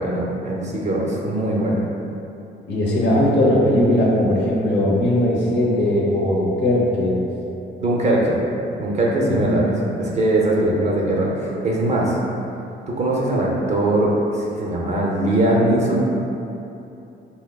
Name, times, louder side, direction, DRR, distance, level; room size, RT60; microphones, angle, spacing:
voice 1, 0.0-1.8 7.8-8.4 8.8-12.2 13.0-16.0, right 1 dB, 35° right, -3 dB, 0.6 m, -21 dB
voice 2, 2.7-7.2 9.2-9.6 10.6-10.8, left 1 dB, 65° left, -5 dB, 0.8 m, -19 dB
3.6 x 2.9 x 2.2 m, 2.8 s
cardioid pair, 90°, 20 cm